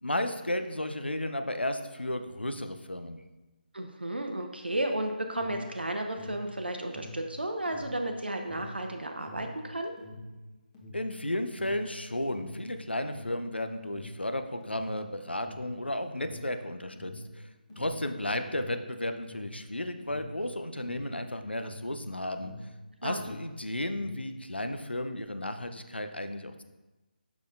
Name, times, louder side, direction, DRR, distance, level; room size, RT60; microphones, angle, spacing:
voice 1, 0.0-3.2 10.9-22.5 23.0-26.6, left 1 dB, 85° left, 8 dB, 0.6 m, -34 dB
voice 2, 3.7-9.9 23.0-23.2, right 1 dB, 75° right, 4 dB, 0.7 m, -33 dB
Alarm, 5.2-22.8 23.0-24.3, left 1 dB, 20° left, 1.1 m, -46 dB
6.6 x 5.9 x 2.5 m, 1.1 s
figure-of-eight pair, 155°, 6 cm